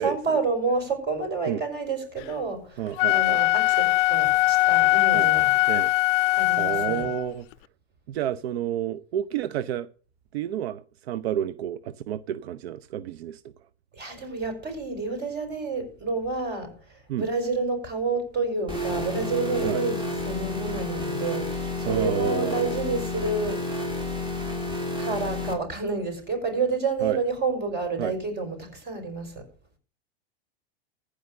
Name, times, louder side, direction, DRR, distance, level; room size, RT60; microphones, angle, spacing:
voice 1, 0.0-5.5 6.4-7.1 13.9-23.9 25.0-29.5, right 3 dB, 30° right, 5.5 m, -29 dB
voice 2, 2.8-3.4 5.1-5.3 5.7-5.9 6.6-7.5 8.1-9.9 10.3-13.5 17.1-17.3 19.6-19.8 21.8-22.8 27.0-27.2 28.0-28.2, right 11 dB, 70° right, 0.7 m, -30 dB
Wind instrument woodwind instrument, 2.9-7.3, left 21 dB, 55° left, 0.5 m, -21 dB
sound 1, 18.7-25.5, left 1 dB, 15° right, 2.7 m, -30 dB
15.0 x 5.1 x 6.4 m
hypercardioid pair, 115°, 32 cm